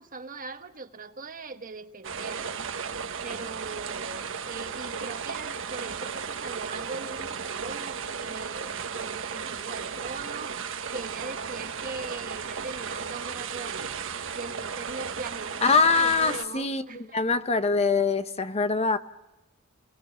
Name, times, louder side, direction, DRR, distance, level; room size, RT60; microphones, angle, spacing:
voice 1, 0.0-2.6 3.2-13.9 14.3-17.4, right 4 dB, 40° right, 1.3 m, -41 dB
sound 1, 2.0-16.4, right 6 dB, 65° right, 1.4 m, -35 dB
voice 2, 15.6-19.0, left 4 dB, 30° left, 0.9 m, -23 dB
29.5 x 19.0 x 7.0 m
head